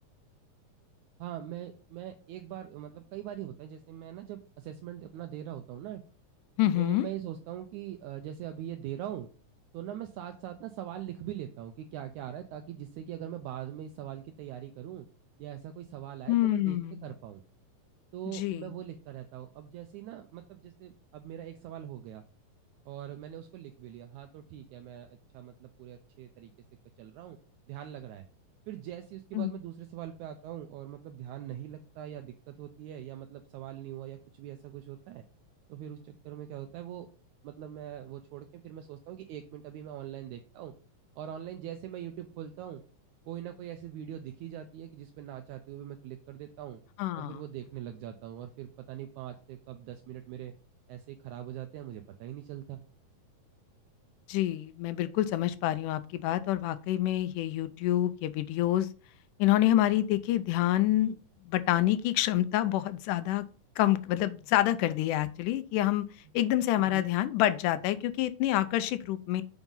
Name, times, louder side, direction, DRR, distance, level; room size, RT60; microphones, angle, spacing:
voice 1, 1.2-6.0 6.8-9.3 9.7-15.1 15.4-17.4 18.1-22.2 22.8-26.5 27.0-27.4 27.7-28.2 28.7-35.3 35.7-37.1 37.4-40.7 41.2-42.8 43.3-46.8 47.1-50.5 50.9-52.8 66.7-67.1, right 11 dB, 80° right, 7 dB, 1.8 m, -42 dB
voice 2, 6.6-7.1 16.3-17.1 18.3-18.7 29.3-29.5 47.0-47.4 54.3-58.9 59.4-61.2 61.5-63.4 63.8-66.0 66.3-69.4, left 14 dB, 80° left, 13 dB, 2.0 m, -27 dB
7.2 x 3.9 x 5.4 m, 0.38 s
omnidirectional pair, 3.9 m